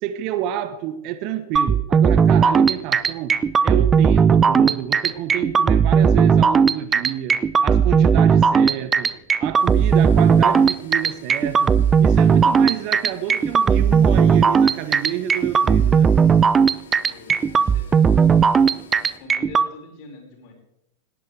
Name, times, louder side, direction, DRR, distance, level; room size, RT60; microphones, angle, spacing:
voice 1, 0.0-3.4 3.6-9.1 9.4-11.7 12.0-16.1, right 11 dB, 40° right, 1.0 m, -28 dB
sound 1, 1.6-19.7, right 6 dB, 20° right, 0.5 m, -16 dB
sound 2, 9.6-19.2, left 6 dB, 60° left, 2.3 m, -48 dB
voice 2, 17.1-18.8 19.2-20.5, left 3 dB, 45° left, 5.5 m, -43 dB
18.5 x 18.0 x 3.5 m
figure-of-eight pair, 90°, 0 cm